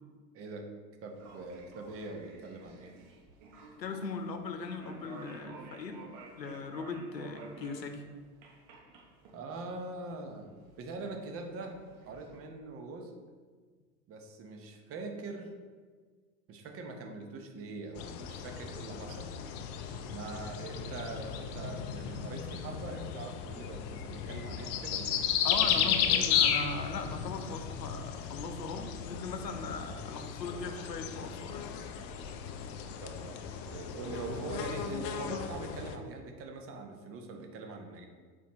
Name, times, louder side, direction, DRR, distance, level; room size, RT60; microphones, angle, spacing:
voice 1, 0.3-0.7 1.0-2.9 9.3-10.5 10.8-11.8 12.1-13.1 14.1-15.5 16.5-19.3 20.1-25.1 25.5-26.2 33.0-33.4 33.7-38.0, right 3 dB, 30° right, 3 dB, 0.9 m, -42 dB
sound 1, 1.1-12.4, right 3 dB, 50° right, 1.1 m, -53 dB
voice 2, 3.8-6.1 6.4-8.0 25.4-31.7, left 4 dB, 85° left, 6 dB, 0.8 m, -39 dB
sound 2, 18.0-36.0, left 8 dB, 35° left, 0.5 m, -34 dB
7.0 x 4.4 x 3.1 m, 1.5 s
hypercardioid pair, 90°, 49 cm